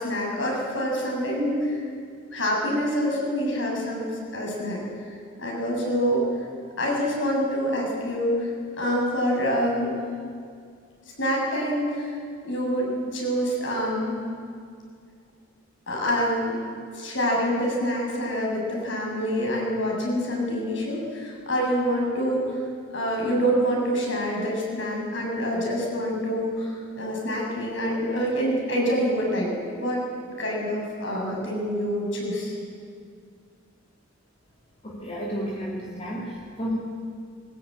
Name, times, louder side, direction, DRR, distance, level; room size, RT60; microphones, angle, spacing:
voice 1, 0.0-1.8 2.3-4.1 4.3-4.8 5.4-6.3 6.8-8.5 8.8-10.0 11.2-12.2 12.4-14.2 15.9-16.6 16.9-22.6 22.9-30.0 30.4-32.5, equal, 65° left, -2 dB, 7.5 m, -26 dB
voice 2, 34.8-36.8, equal, 30° left, -2 dB, 2.4 m, -31 dB
21.0 x 20.0 x 9.7 m, 2.2 s
head